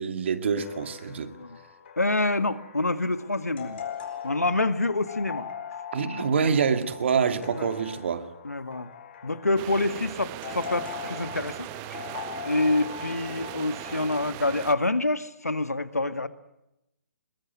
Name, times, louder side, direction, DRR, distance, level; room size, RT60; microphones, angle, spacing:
voice 1, 0.0-1.3 5.9-8.3, right 6 dB, 50° right, 2.2 m, -26 dB
sound 1, 0.6-14.3, left 8 dB, 45° left, 4.5 m, -41 dB
voice 2, 2.0-3.8 4.2-5.5 7.5-7.7 8.4-8.9 9.2-12.0 12.4-16.3, left 2 dB, 80° left, 1.7 m, -27 dB
sound 2, 9.6-14.7, right 16 dB, 25° right, 0.9 m, -39 dB
22.0 x 22.0 x 9.6 m
figure-of-eight pair, 135°, 8 cm